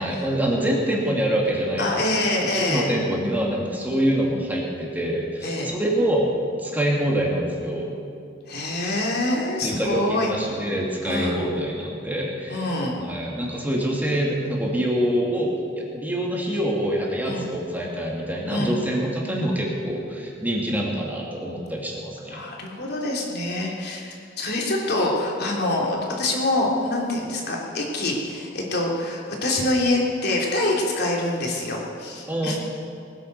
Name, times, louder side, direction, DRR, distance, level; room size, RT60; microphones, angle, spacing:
voice 1, 0.0-2.0 2.5-6.3 6.6-7.9 9.6-12.7 13.0-15.5 15.9-22.4 32.3-32.6, right 1 dB, 10° right, -2 dB, 2.4 m, -25 dB
voice 2, 1.8-2.9 5.4-5.7 8.5-10.3 11.0-11.5 12.5-13.0 17.3-17.5 18.5-18.8 22.2-32.6, left 2 dB, 60° left, -2 dB, 3.2 m, -25 dB
20.5 x 10.0 x 6.8 m, 2.5 s
head